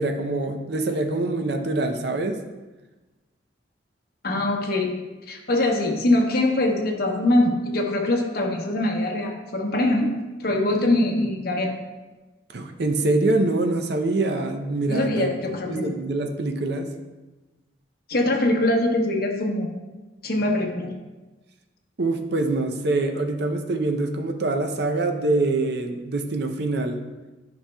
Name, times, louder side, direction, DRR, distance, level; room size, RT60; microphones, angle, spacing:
voice 1, 0.0-2.4 12.5-15.3 15.6-16.9 22.0-27.0, right 2 dB, 60° right, 5 dB, 0.6 m, -24 dB
voice 2, 4.2-5.0 5.3-10.1 10.4-11.8 14.9-15.9 18.1-19.7 20.2-20.9, left 1 dB, 50° left, 1 dB, 0.9 m, -23 dB
9.9 x 5.2 x 2.3 m, 1.2 s
head